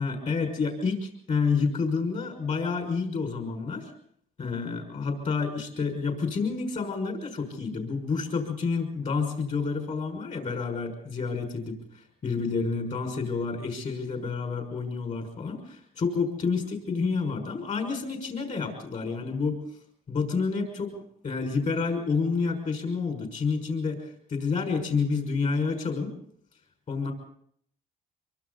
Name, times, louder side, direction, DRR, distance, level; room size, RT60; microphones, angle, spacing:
voice 1, 0.0-3.9 4.4-19.6 20.1-20.9 21.2-26.1 26.9-27.1, left 4 dB, 45° left, 4 dB, 6.1 m, -29 dB
26.0 x 24.5 x 4.2 m, 0.65 s
cardioid pair, 110°, 17 cm